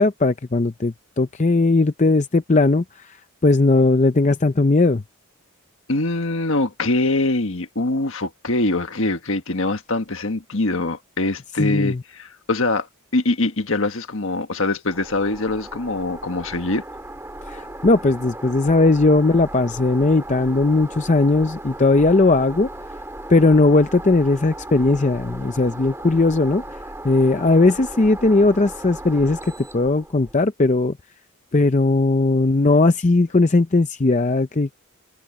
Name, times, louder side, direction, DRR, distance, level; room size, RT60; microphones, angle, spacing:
voice 1, 0.0-3.2 3.4-5.0 11.6-12.0 17.5-22.7 23.3-26.6 27.0-31.0 31.5-34.7, left 3 dB, 30° left, 0.5 m, -18 dB
voice 2, 5.9-12.9 13.1-16.8, left 2 dB, 60° left, 1.6 m, -23 dB
sound 1, 14.9-30.4, right 1 dB, 10° right, 2.8 m, -37 dB
head